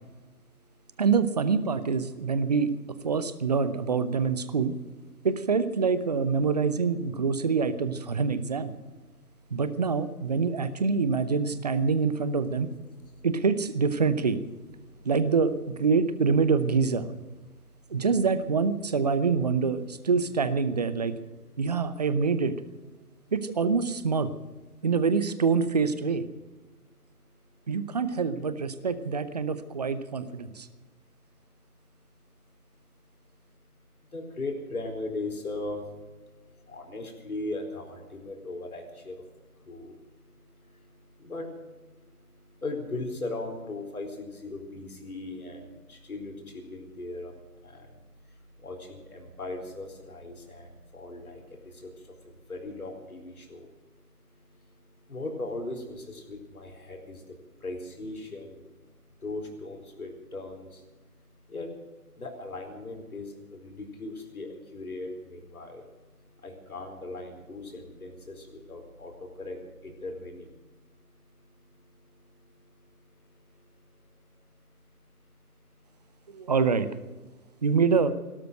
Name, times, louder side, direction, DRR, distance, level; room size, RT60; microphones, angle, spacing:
voice 1, 0.1-1.0 2.1-2.7 3.4-3.5 4.4-4.6 4.8-5.3 6.4-6.5 7.0-7.4 8.6-10.3 10.7-10.8 12.5-13.3 14.8-15.1 17.5-18.1 19.8-20.0 20.9-22.0 23.0-23.3 24.7-24.9 26.6-28.0 29.4-76.5 77.3-77.6, left 2 dB, 65° left, 3 dB, 4.4 m, -41 dB
voice 2, 1.0-2.7 3.0-4.7 5.2-8.7 9.5-12.7 13.2-14.4 15.0-17.1 17.9-21.1 21.6-22.6 23.3-24.3 24.8-26.3 27.7-30.7 76.3-76.9 77.6-78.1, right 5 dB, 25° right, 14 dB, 0.8 m, -25 dB
17.0 x 13.0 x 6.4 m, 1.2 s
figure-of-eight pair, 140°, 47 cm